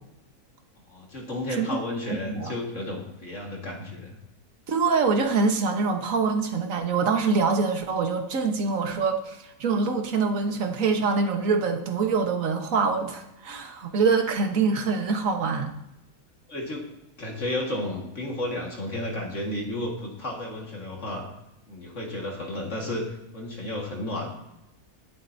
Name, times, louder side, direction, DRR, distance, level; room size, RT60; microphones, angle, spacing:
voice 1, 0.9-4.2 16.5-16.9 17.2-21.3 21.7-24.3, left 1 dB, 50° left, -1 dB, 2.2 m, -32 dB
voice 2, 2.1-2.5 4.7-15.7, right 4 dB, 60° right, 4 dB, 1.7 m, -25 dB
20.5 x 7.7 x 2.7 m, 0.86 s
omnidirectional pair, 1.7 m